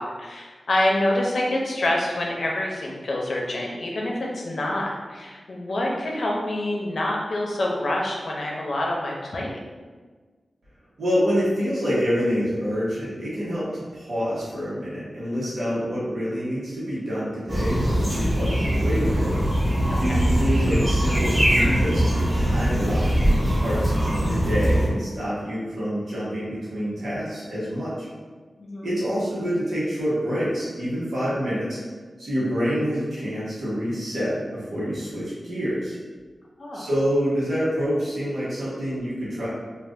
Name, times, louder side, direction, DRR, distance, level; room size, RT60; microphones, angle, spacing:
voice 1, 0.0-9.6 19.9-20.2 28.6-29.0 36.6-36.9, left 1 dB, 65° left, -2 dB, 0.6 m, -27 dB
voice 2, 11.0-19.3 20.0-28.1 28.8-31.8 32.2-36.0 36.7-39.5, equal, 80° right, -9 dB, 1.1 m, -27 dB
sound 1, 17.5-24.9, equal, 25° right, 0.8 m, -22 dB
2.5 x 2.4 x 3.5 m, 1.4 s
wide cardioid pair, 90°, 0 cm